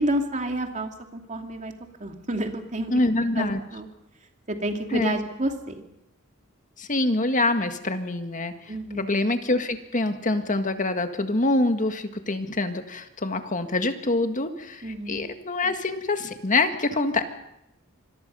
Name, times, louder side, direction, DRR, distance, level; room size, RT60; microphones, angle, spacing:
voice 1, 0.0-1.7 2.0-3.0 3.4-3.9 4.5-5.8 8.7-9.0 14.8-15.2, right 1 dB, 35° right, 4 dB, 2.6 m, -29 dB
voice 2, 2.9-3.6 4.9-5.2 6.8-17.3, left 2 dB, 40° left, 7 dB, 1.8 m, -25 dB
27.0 x 22.0 x 5.6 m, 0.86 s
head